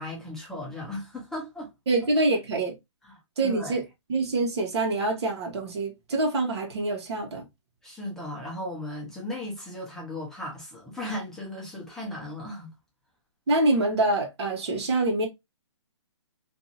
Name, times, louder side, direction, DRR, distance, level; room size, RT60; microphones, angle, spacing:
voice 1, 0.0-1.7 3.0-3.8 7.8-12.7, left 1 dB, 5° left, 0.8 m, -36 dB
voice 2, 1.9-2.7 3.4-3.8 4.1-7.4 13.5-15.3, right 2 dB, 60° right, 1.1 m, -25 dB
2.7 x 2.6 x 2.7 m
hypercardioid pair, 140°, 16 cm